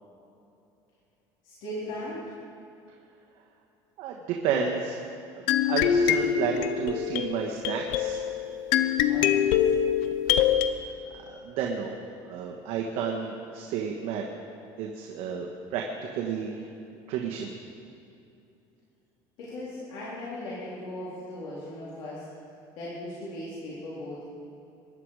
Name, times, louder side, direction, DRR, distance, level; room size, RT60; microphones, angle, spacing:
voice 1, 1.4-2.3 9.1-9.5 19.4-22.3 22.8-24.2, left 1 dB, 60° left, -8 dB, 3.9 m, -38 dB
voice 2, 4.0-5.0 5.6-8.2 11.4-11.9 12.3-14.3 14.8-15.9 16.1-16.7 17.1-17.5, right 6 dB, 65° right, 1 dB, 1.4 m, -31 dB
sound 1, 5.5-10.7, left 9 dB, 80° left, 0.8 m, -24 dB
22.0 x 10.5 x 4.9 m, 2.7 s
cardioid pair, 150°, 10 cm